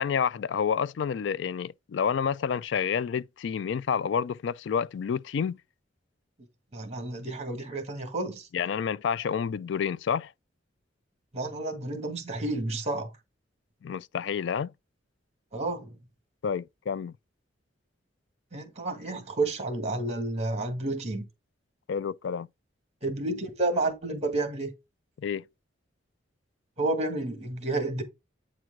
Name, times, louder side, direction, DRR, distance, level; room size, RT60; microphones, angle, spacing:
voice 1, 0.0-5.6 8.5-10.3 13.8-14.7 16.4-17.1 21.9-22.5 25.2-25.4, left 7 dB, 65° left, 0.3 m, -29 dB
voice 2, 6.7-8.5 11.3-13.1 15.5-15.9 18.5-21.2 23.0-24.7 26.8-28.0, right 2 dB, 35° right, 2.0 m, -30 dB
8.6 x 4.6 x 3.7 m
head